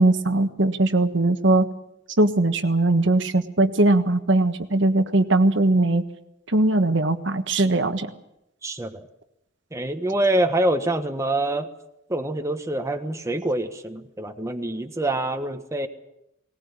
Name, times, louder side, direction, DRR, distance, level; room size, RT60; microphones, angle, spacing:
voice 1, 0.0-1.7 2.2-6.0 6.5-8.1, right 2 dB, 65° right, 8 dB, 1.5 m, -20 dB
voice 2, 8.6-9.1 9.7-11.7 12.1-15.9, right 1 dB, 15° right, 6 dB, 1.3 m, -25 dB
19.5 x 19.0 x 8.9 m, 0.82 s
head